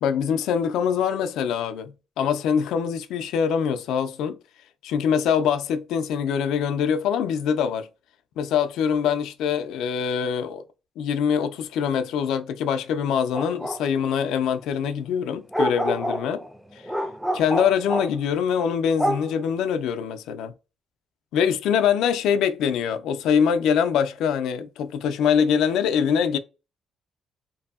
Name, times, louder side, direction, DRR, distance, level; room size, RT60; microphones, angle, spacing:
voice 1, 0.0-4.4 4.8-7.9 8.4-10.6 11.0-16.4 16.7-16.8 17.3-20.5 21.3-26.4, left 7 dB, 85° left, 0.3 m, -24 dB
sound 1, 13.3-13.8 15.5-18.1 19.0-19.4, equal, 5° right, 0.3 m, -27 dB
2.7 x 2.6 x 2.3 m
cardioid pair, 90°, 0 cm